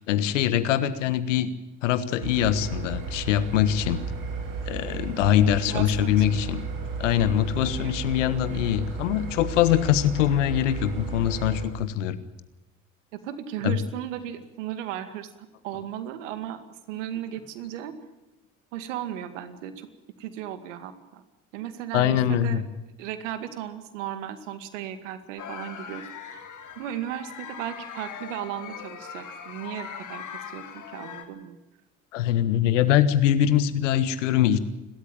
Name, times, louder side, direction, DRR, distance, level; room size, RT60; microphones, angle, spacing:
voice 1, 0.0-1.5 1.8-4.0 4.7-6.6 7.0-12.2 13.6-13.8 21.9-22.6 32.1-34.6, left 11 dB, 90° left, 14 dB, 1.5 m, -23 dB
sound 1, 2.2-11.7, right 4 dB, 65° right, 6.2 m, -34 dB
voice 2, 5.6-6.5 7.8-7.9 8.7-8.8 13.1-16.6 16.9-17.9 18.7-19.9 20.2-21.2 21.5-22.6 23.0-26.4 26.8-31.6, right 11 dB, 85° right, 11 dB, 2.3 m, -36 dB
sound 2, 25.4-31.2, left 7 dB, 55° left, 3.9 m, -40 dB
29.5 x 13.0 x 9.0 m, 1.0 s
hypercardioid pair, 65°, 36 cm